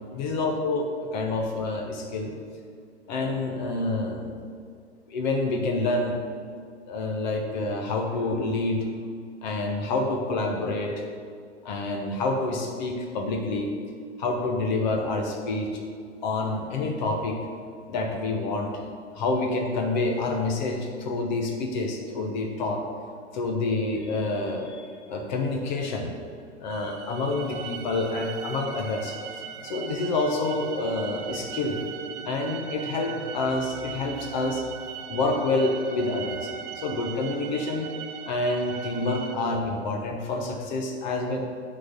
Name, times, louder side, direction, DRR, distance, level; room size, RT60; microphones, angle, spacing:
voice 1, 0.1-2.3 3.1-4.3 5.1-6.2 6.9-8.9 9.4-11.0 11.6-13.7 14.2-15.8 16.2-17.4 17.9-18.8 19.1-22.8 23.3-26.1 26.6-29.2 29.6-31.9 32.3-34.6 35.1-37.9 38.3-41.4, left 2 dB, 40° left, 3 dB, 1.0 m, -28 dB
sound 1, 26.7-39.4, right 8 dB, 25° right, 0.5 m, -39 dB
9.6 x 4.2 x 6.9 m, 2.2 s
figure-of-eight pair, 105°, 35 cm